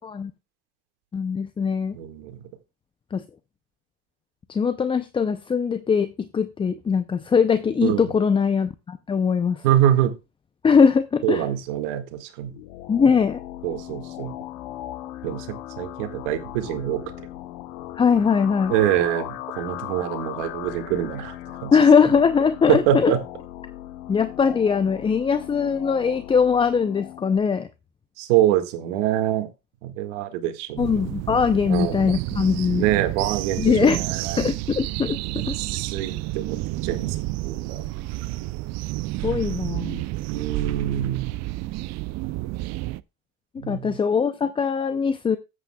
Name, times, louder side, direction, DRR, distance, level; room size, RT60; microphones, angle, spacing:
voice 1, 1.1-2.0 3.1-3.2 4.5-9.6 10.6-11.4 12.9-13.4 18.0-18.8 21.7-23.1 24.1-27.7 30.8-32.8 33.6-34.0 34.4-35.2 35.5-35.6 39.2-40.0 43.7-45.4, left 6 dB, 15° left, 12 dB, 0.4 m, -21 dB
voice 2, 1.9-2.4 7.8-8.1 9.6-10.1 11.2-12.5 13.6-14.3 15.2-17.0 18.7-21.4 21.6-21.7 22.7-23.2 28.2-29.5 29.8-31.2 31.7-32.1 32.8-34.5 35.3-37.8 40.3-41.4 43.6-44.0, right 12 dB, 80° right, 7 dB, 1.7 m, -25 dB
sound 1, 12.4-27.4, left 14 dB, 70° left, 0.9 m, -38 dB
sound 2, 30.8-43.0, right 18 dB, 50° right, 0.4 m, -30 dB
13.0 x 8.5 x 2.2 m, 0.26 s
supercardioid pair, 110°, 35 cm